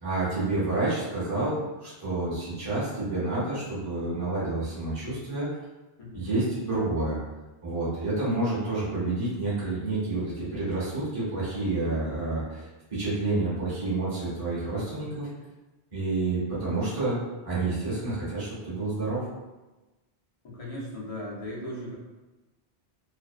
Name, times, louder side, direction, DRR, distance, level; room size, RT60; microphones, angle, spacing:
voice 1, 0.0-5.5 6.1-7.2 7.6-15.3 15.9-19.2, right 2 dB, 25° right, -10 dB, 0.8 m, -29 dB
voice 2, 14.7-15.1 20.4-21.9, left 1 dB, 40° left, -5 dB, 0.6 m, -38 dB
2.5 x 2.0 x 2.4 m, 1.1 s
omnidirectional pair, 1.1 m